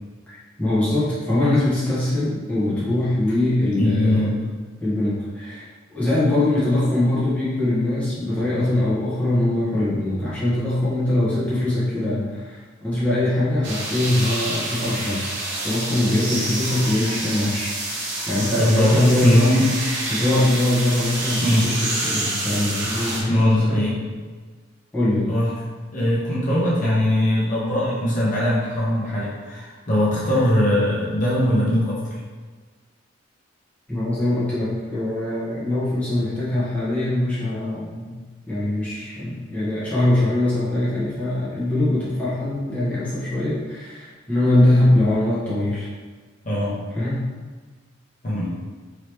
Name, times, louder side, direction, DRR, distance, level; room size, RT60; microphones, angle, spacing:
voice 1, 0.6-4.4 4.8-15.4 15.6-17.7 18.3-19.6 20.1-23.8 24.9-25.3 33.9-38.1 38.5-45.9 46.9-47.2, left 1 dB, 5° left, -11 dB, 0.9 m, -22 dB
voice 2, 3.7-4.4 18.6-19.7 21.4-21.7 23.3-24.0 25.3-25.5 25.9-32.0 46.4-46.7 48.2-48.5, left 1 dB, 40° left, -7 dB, 0.9 m, -20 dB
sound 1, 13.6-23.2, right 2 dB, 60° right, 0.8 m, -28 dB
2.9 x 2.9 x 3.2 m, 1.4 s
head